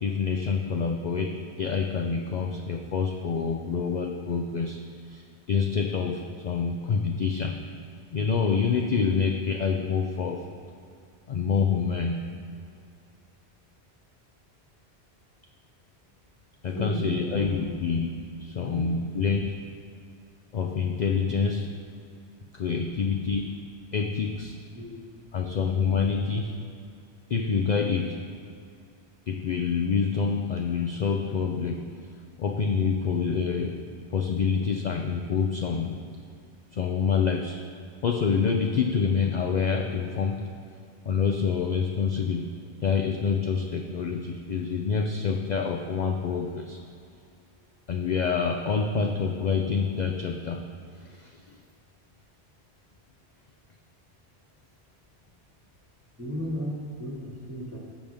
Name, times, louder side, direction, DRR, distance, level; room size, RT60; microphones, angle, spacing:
voice 1, 0.0-4.8 5.1-7.6 8.1-10.5 11.3-12.3 16.6-18.1 18.4-19.6 20.5-21.7 22.5-23.6 23.9-24.6 25.3-26.6 27.3-28.2 29.3-31.9 32.4-33.8 34.1-36.0 36.7-37.6 38.0-40.5 41.0-42.5 42.8-46.8 47.9-50.6 51.0-51.6, left 5 dB, 50° left, 3 dB, 0.6 m, -27 dB
voice 2, 16.7-17.7 18.6-18.9 24.7-25.0 56.2-57.8, equal, 15° right, -4 dB, 1.7 m, -34 dB
15.5 x 5.3 x 3.5 m, 2.4 s
omnidirectional pair, 1.1 m